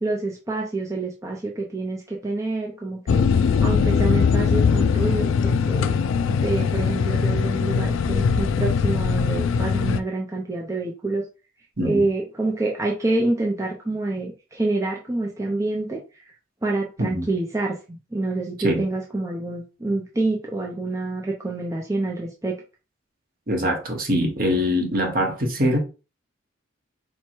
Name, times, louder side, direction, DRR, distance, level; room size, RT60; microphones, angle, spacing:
voice 1, 0.0-5.9 6.3-11.2 11.8-16.0 16.6-22.5, right 2 dB, 15° right, 0.5 m, -27 dB
sound 1, 3.1-10.0, left 5 dB, 80° left, 0.3 m, -21 dB
voice 2, 23.5-25.8, equal, 45° right, 1.0 m, -23 dB
4.6 x 2.2 x 4.4 m
head